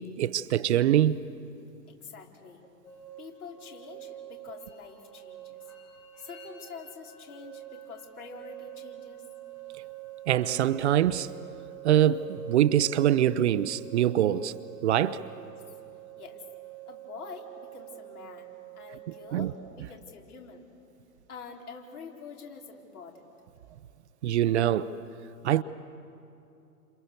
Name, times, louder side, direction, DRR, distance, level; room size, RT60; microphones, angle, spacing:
voice 1, 0.2-1.2 10.3-11.3 11.8-14.5 14.8-15.2 19.3-19.5 24.2-25.0 25.4-25.6, right 11 dB, 45° right, 0.7 m, -24 dB
voice 2, 1.9-2.6 3.2-5.6 6.2-9.2 15.2-15.5 16.2-16.4 16.9-20.7 21.3-23.3, left 5 dB, 60° left, 4.5 m, -46 dB
sound 1, 2.8-19.5, right 14 dB, 75° left, 7.5 m, -46 dB
29.0 x 27.5 x 7.0 m
figure-of-eight pair, 115°, 48 cm